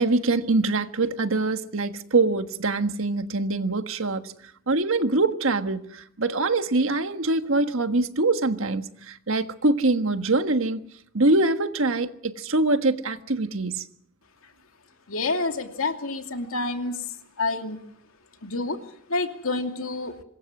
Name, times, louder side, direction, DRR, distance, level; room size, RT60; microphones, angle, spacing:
voice 1, 0.0-4.3 4.7-10.8 11.1-13.8, right 2 dB, 65° right, 1.5 m, -24 dB
voice 2, 15.1-17.8 18.4-20.2, left 3 dB, 70° left, 2.7 m, -29 dB
26.0 x 21.5 x 6.1 m
head